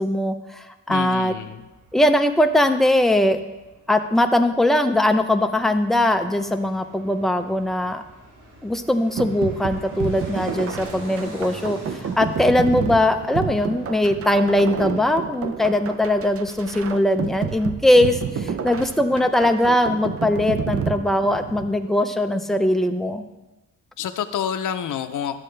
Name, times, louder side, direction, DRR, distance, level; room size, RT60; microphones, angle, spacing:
voice 1, 0.0-1.3 1.9-3.4 3.9-8.0 8.6-23.2, left 1 dB, ahead, 6 dB, 0.5 m, -20 dB
voice 2, 0.9-1.7 24.0-25.4, left 9 dB, 75° left, 7 dB, 0.6 m, -28 dB
Fixed-wing aircraft airplane, 1.5-18.2 18.5-18.6, right 1 dB, 80° right, 2.1 m, -45 dB
sound 1, 9.2-21.7, right 7 dB, 45° right, 0.5 m, -30 dB
12.0 x 7.5 x 3.3 m, 1.1 s
wide cardioid pair, 120°, 31 cm